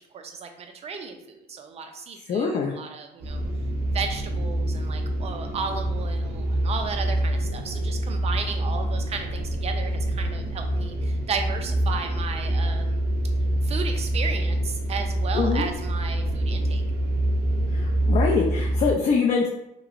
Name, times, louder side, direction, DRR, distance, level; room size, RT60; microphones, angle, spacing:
voice 1, 0.1-3.4 3.9-13.0 13.6-16.8, right 5 dB, 40° right, 5 dB, 0.5 m, -34 dB
voice 2, 2.3-2.7 15.3-15.7 17.7-19.5, left 5 dB, 40° left, -1 dB, 0.5 m, -24 dB
sound 1, 3.2-18.9, right 1 dB, 75° right, 0.7 m, -26 dB
3.0 x 2.8 x 2.5 m, 0.87 s
cardioid pair, 110°, 17 cm